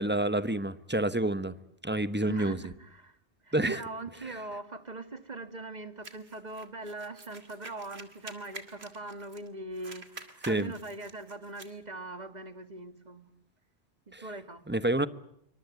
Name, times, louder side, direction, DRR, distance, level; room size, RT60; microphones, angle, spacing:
voice 1, 0.0-1.5 1.8-2.7 3.5-3.8 4.2-4.3 10.5-10.7 14.1-14.2 14.7-15.1, right 1 dB, 10° right, 1.0 m, -28 dB
voice 2, 2.2-3.2 3.4-13.3 14.1-14.6, right 2 dB, 40° right, 2.1 m, -41 dB
sound 1, 6.0-9.5 9.7-11.7, right 3 dB, 70° right, 2.7 m, -48 dB
27.0 x 24.5 x 8.3 m
omnidirectional pair, 1.1 m